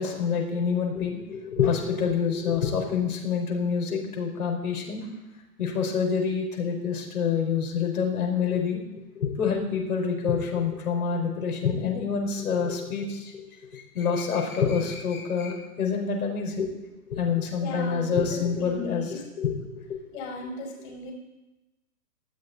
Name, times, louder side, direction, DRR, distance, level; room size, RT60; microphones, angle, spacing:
voice 1, 0.0-5.1 5.6-8.8 9.1-13.4 13.7-16.7 17.1-19.5, left 6 dB, 65° left, 1 dB, 4.9 m, -27 dB
voice 2, 17.6-19.2 20.1-21.1, left 3 dB, 45° left, 1 dB, 5.5 m, -36 dB
19.0 x 14.5 x 4.1 m, 1.0 s
figure-of-eight pair, 125°, 48 cm